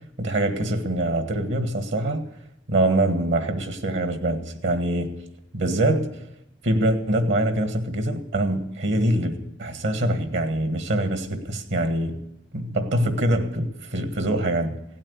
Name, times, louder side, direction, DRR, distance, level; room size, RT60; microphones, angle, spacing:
voice 1, 0.2-2.2 2.7-5.1 5.5-6.1 6.6-12.2 12.5-14.8, right 1 dB, 65° right, 1.6 m, -24 dB
16.5 x 8.8 x 8.3 m
head